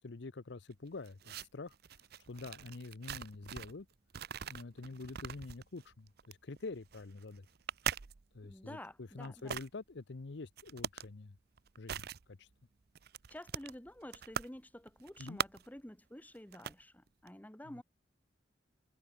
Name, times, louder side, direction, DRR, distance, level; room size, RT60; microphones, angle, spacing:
voice 1, 0.0-1.8 2.2-3.9 4.5-7.5 8.3-11.4 11.8-12.5 15.2-15.4 17.7-17.8, left 3 dB, 70° left, 0.8 m, -46 dB
sound 1, 0.7-3.8 4.1-8.5 9.2-9.7 10.6-11.1 11.4-12.2 12.5-12.6 12.9-14.6 14.9-15.8 16.3-16.8 17.1-17.3, right 8 dB, 60° right, 0.7 m, -42 dB
voice 2, 8.4-9.6 13.3-17.8, left 1 dB, 10° left, 1.2 m, -50 dB
head